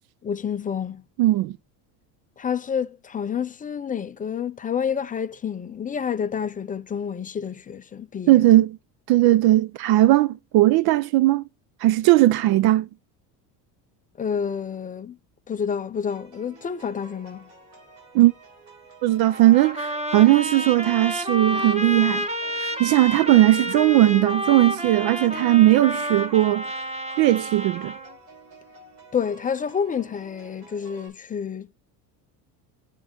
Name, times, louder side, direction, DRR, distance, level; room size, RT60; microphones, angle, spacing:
voice 1, 0.2-1.0 2.4-8.4 14.2-15.2 15.5-17.5 29.1-31.7, left 7 dB, 20° left, 0.4 m, -29 dB
voice 2, 1.2-1.5 8.3-8.8 9.1-11.4 11.8-12.9 18.1-18.3 19.0-22.3 22.6-26.7 27.2-27.9, right 15 dB, 50° right, 0.5 m, -18 dB
sound 1, 16.1-31.1, right 4 dB, 80° right, 3.7 m, -50 dB
Trumpet, 19.2-28.1, equal, 15° right, 1.6 m, -30 dB
7.3 x 4.0 x 4.3 m
supercardioid pair, 90°, 49 cm